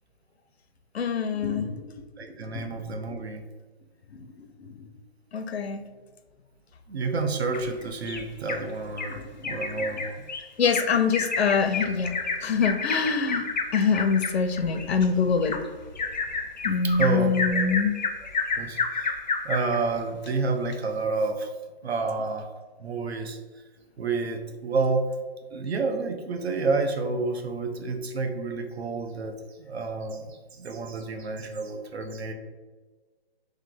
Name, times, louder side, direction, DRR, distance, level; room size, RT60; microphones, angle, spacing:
voice 1, 0.9-2.1 2.5-2.6 4.1-4.9 5.3-5.8 9.1-9.6 10.6-15.6 16.6-18.0, left 5 dB, 85° left, 8 dB, 0.6 m, -25 dB
voice 2, 2.2-3.4 6.9-10.1 16.8-17.7 18.6-19.1 19.4-21.5 21.8-22.5 22.8-23.4 24.0-25.1 25.5-29.4 29.6-32.3, right 3 dB, 85° right, 5 dB, 0.8 m, -29 dB
Bird vocalization bird call bird song, 7.5-8.6 9.0-9.1 9.4-19.8 20.3-20.4 20.7-20.8, left 4 dB, 45° left, 0.4 m, -30 dB
3.3 x 3.2 x 3.8 m, 1.3 s
hypercardioid pair, 180°, 31 cm